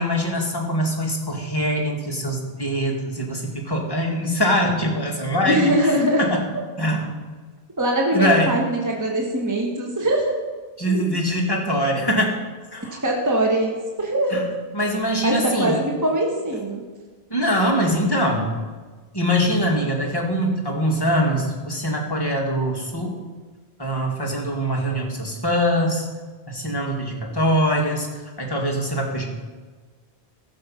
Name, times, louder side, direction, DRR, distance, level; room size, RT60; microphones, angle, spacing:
voice 1, 0.0-6.4 6.8-7.2 8.1-8.5 10.8-12.4 12.7-13.0 14.3-14.4 14.7-15.8 17.3-18.5 19.1-23.2 23.8-26.1 26.5-28.1 28.4-29.4, equal, 20° left, -2 dB, 2.1 m, -23 dB
voice 2, 5.4-6.2 7.8-10.3 10.9-11.0 13.0-14.4 15.2-16.8, right 1 dB, 15° right, -1 dB, 1.3 m, -22 dB
15.5 x 6.8 x 5.7 m, 1.4 s
omnidirectional pair, 1.2 m